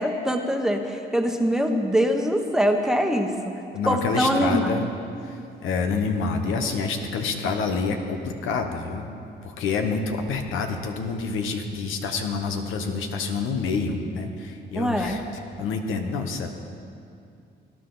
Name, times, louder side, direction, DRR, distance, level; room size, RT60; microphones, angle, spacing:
voice 1, 0.0-3.3 3.9-4.8 14.8-15.2, equal, 5° right, 3 dB, 1.1 m, -23 dB
voice 2, 3.7-4.9 5.2-9.1 9.4-15.2 15.6-16.5, left 4 dB, 85° left, 5 dB, 1.1 m, -27 dB
18.5 x 10.5 x 4.0 m, 2.5 s
cardioid pair, 90°, 20 cm